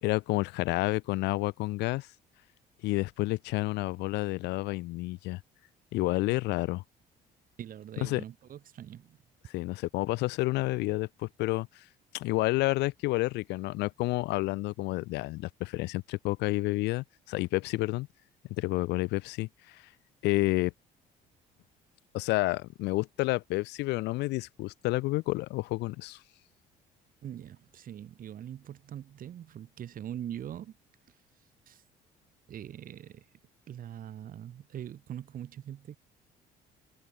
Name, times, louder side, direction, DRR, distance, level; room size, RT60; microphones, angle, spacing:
voice 1, 0.0-2.1 2.8-5.4 5.9-6.8 8.0-8.2 9.5-11.8 12.1-18.1 18.6-19.9 20.2-20.7 22.1-26.2, left 20 dB, 90° left, 1.8 m, -30 dB
voice 2, 7.6-9.2 27.2-30.8 31.1-31.2 31.7-31.8 32.5-33.3 33.7-36.0, right 10 dB, 55° right, 4.6 m, -42 dB
cardioid pair, 110°, 17 cm